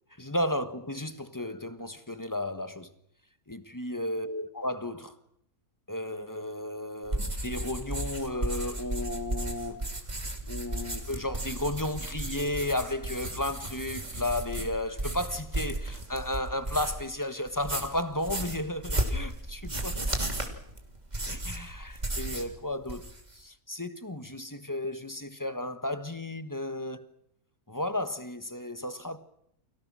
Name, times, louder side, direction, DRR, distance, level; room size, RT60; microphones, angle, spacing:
voice 1, 0.2-2.9 3.5-5.1 5.9-9.9 10.5-20.2 21.3-23.0 23.3-27.0 27.7-29.2, left 1 dB, 15° left, 1.4 m, -33 dB
Writing on Paper, 7.1-17.1 17.5-22.5 22.8-23.4, right 1 dB, 25° right, 3.0 m, -34 dB
30.0 x 24.0 x 6.4 m
omnidirectional pair, 1.6 m